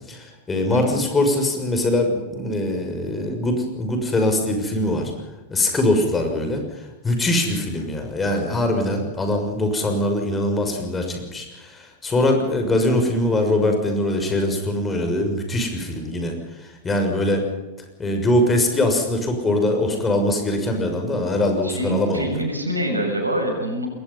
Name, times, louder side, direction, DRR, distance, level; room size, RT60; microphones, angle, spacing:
voice 1, 0.1-5.1 5.5-6.6 7.0-16.4 16.8-17.4 18.0-22.3, left 1 dB, 15° left, 4 dB, 6.5 m, -22 dB
voice 2, 0.7-1.1 21.6-23.9, right 1 dB, 85° right, 3 dB, 6.8 m, -25 dB
27.5 x 21.5 x 5.6 m, 1.1 s
figure-of-eight pair, 90°, 0 cm